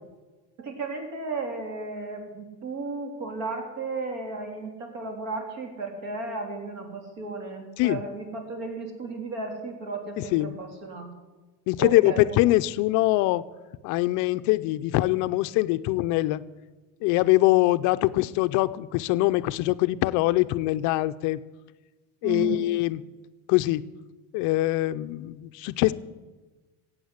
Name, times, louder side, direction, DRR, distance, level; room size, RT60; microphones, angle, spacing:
voice 1, 0.6-11.1 11.8-12.3 22.2-22.6, right 3 dB, 60° right, 3 dB, 3.6 m, -34 dB
voice 2, 10.2-10.5 11.7-13.4 13.8-16.4 17.0-21.4 22.2-23.0 23.5-23.8 24.3-25.9, left 18 dB, 40° left, 12 dB, 0.4 m, -23 dB
15.0 x 8.8 x 8.2 m, 1.2 s
cardioid pair, 155°, 48 cm